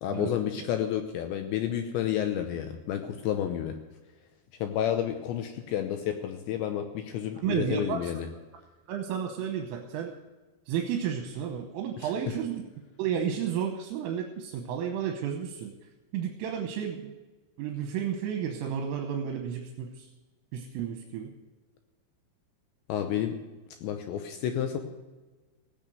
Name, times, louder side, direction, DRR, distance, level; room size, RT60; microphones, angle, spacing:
voice 1, 0.0-3.8 4.6-8.3 12.0-12.1 22.9-23.4 23.8-24.8, left 10 dB, 80° left, 6 dB, 2.8 m, -30 dB
voice 2, 7.4-8.1 8.9-10.1 10.7-12.6 13.0-15.7 16.1-17.2 17.6-20.1 20.5-21.3, right 8 dB, 80° right, 3 dB, 3.5 m, -32 dB
16.5 x 8.8 x 7.7 m, 1.2 s
omnidirectional pair, 5.9 m